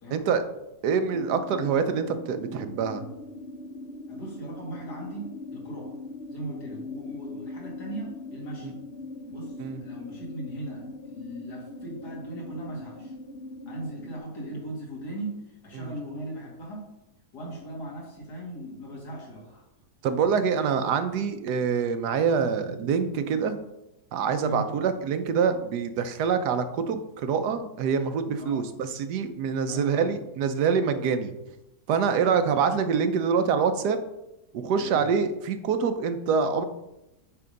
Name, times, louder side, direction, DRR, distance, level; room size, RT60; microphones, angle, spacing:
voice 1, 0.1-0.4 0.8-3.0 8.6-8.7 9.6-9.8 15.7-15.9 20.0-23.6 24.1-31.3 31.9-34.0 34.5-36.6, right 6 dB, 80° right, 9 dB, 1.3 m, -25 dB
sound 1, 1.1-14.2, left 2 dB, 55° left, 0.7 m, -41 dB
voice 2, 4.1-6.0 6.3-8.8 9.3-13.1 13.7-16.9 17.3-19.6 24.4-24.6 28.4-28.7 29.6-30.1 34.8-35.1, right 1 dB, 80° left, -2 dB, 2.6 m, -38 dB
8.6 x 3.5 x 5.1 m, 0.90 s
omnidirectional pair, 1.7 m